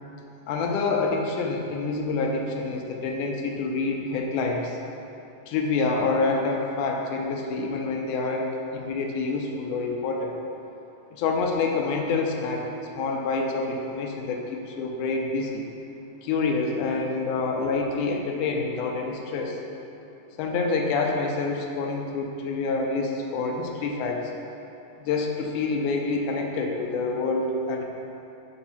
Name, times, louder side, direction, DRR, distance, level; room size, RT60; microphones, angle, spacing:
voice 1, 0.5-4.8 5.5-10.4 11.1-12.7 12.9-15.7 16.2-19.6 20.4-24.3 25.0-27.8, left 3 dB, 85° left, 1 dB, 2.1 m, -27 dB
6.4 x 4.1 x 6.0 m, 2.9 s
omnidirectional pair, 3.7 m